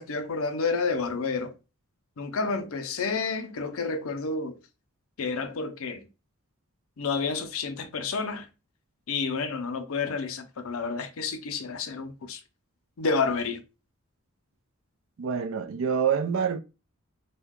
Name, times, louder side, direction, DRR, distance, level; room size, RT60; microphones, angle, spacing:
voice 1, 0.0-1.5 2.2-4.6 5.2-6.0 7.0-8.5 9.1-12.4 13.0-13.6, left 4 dB, 80° left, 0.5 m, -30 dB
voice 2, 15.2-16.6, right 7 dB, 70° right, 0.4 m, -26 dB
2.8 x 2.2 x 3.5 m
head